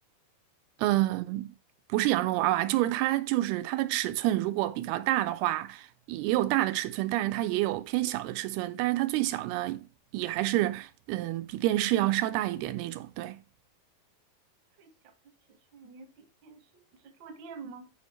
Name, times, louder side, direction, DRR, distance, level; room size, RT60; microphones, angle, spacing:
voice 1, 0.8-1.5 1.9-9.9 10.1-13.4, right 16 dB, 85° right, 2.5 m, -28 dB
voice 2, 14.8-15.1 15.5-17.9, right 5 dB, 60° right, 1.2 m, -48 dB
11.5 x 5.0 x 3.1 m
omnidirectional pair, 4.6 m